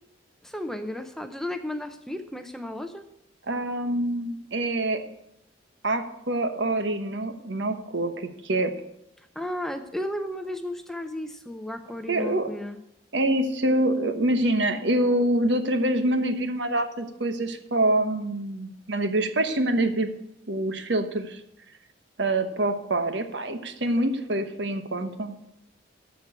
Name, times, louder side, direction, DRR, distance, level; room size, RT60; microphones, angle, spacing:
voice 1, 0.4-3.1 9.4-12.8, left 1 dB, ahead, 7 dB, 0.6 m, -34 dB
voice 2, 3.5-5.0 5.8-8.7 12.1-12.5 13.1-20.1 20.5-21.4 22.2-25.4, right 1 dB, 65° right, 8 dB, 1.1 m, -25 dB
13.5 x 4.6 x 8.0 m, 0.81 s
head